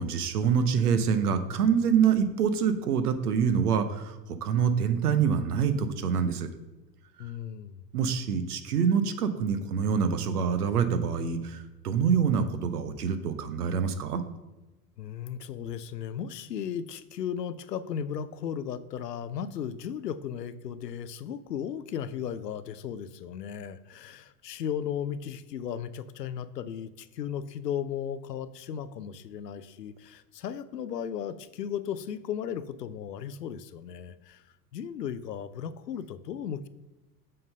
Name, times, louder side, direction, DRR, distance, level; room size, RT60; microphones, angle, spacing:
voice 1, 0.0-6.5 7.9-14.2, right 7 dB, 70° right, 10 dB, 0.9 m, -26 dB
voice 2, 7.2-7.8 15.0-34.4 34.7-36.7, left 8 dB, 80° left, 14 dB, 0.6 m, -36 dB
7.6 x 3.9 x 5.4 m, 1.1 s
figure-of-eight pair, 85°, 49 cm